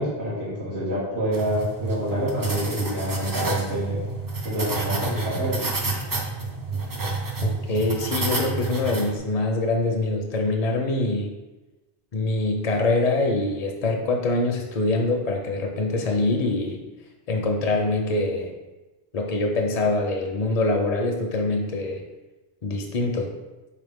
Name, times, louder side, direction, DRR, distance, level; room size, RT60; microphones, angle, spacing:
voice 1, 0.0-4.0 4.4-5.6, equal, 90° right, -11 dB, 1.6 m, -27 dB
sound 1, 1.3-9.2, right 3 dB, 30° right, 0.4 m, -29 dB
voice 2, 7.4-11.3 12.1-16.8 17.3-18.5 19.1-22.0 22.6-23.3, left 2 dB, 50° left, 2 dB, 0.5 m, -24 dB
4.2 x 3.3 x 3.5 m, 1.1 s
omnidirectional pair, 1.1 m